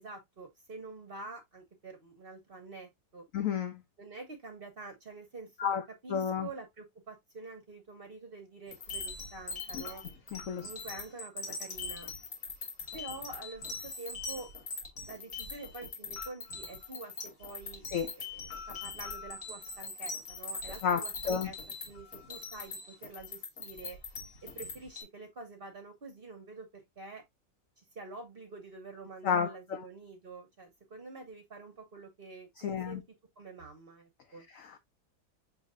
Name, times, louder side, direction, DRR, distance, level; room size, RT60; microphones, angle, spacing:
voice 1, 0.0-3.2 4.0-5.8 6.0-10.0 10.6-12.1 12.9-14.5 15.1-17.8 18.2-21.6 21.9-24.0 24.4-27.2 27.8-33.0 33.4-34.5, right 3 dB, 45° right, 0.8 m, -47 dB
voice 2, 3.3-3.8 5.6-5.8 6.1-6.5 9.7-9.9 10.3-10.7 17.9-18.1 20.8-21.5 29.2-29.8 32.6-33.0 34.5-34.8, left 7 dB, 75° left, 0.7 m, -31 dB
sound 1, 8.7-25.0, left 4 dB, 50° left, 1.9 m, -41 dB
6.9 x 2.7 x 2.4 m
omnidirectional pair, 1.9 m